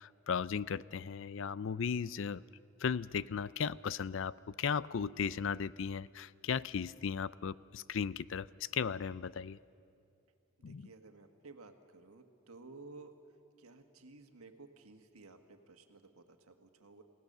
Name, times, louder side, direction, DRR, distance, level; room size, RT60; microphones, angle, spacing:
voice 1, 0.0-2.4 2.8-8.5 8.7-9.6 10.6-10.9, left 6 dB, 60° left, 19 dB, 0.4 m, -36 dB
voice 2, 10.6-13.1 13.6-17.0, right 3 dB, 85° right, 6 dB, 1.7 m, -55 dB
29.5 x 17.0 x 6.7 m, 2.6 s
head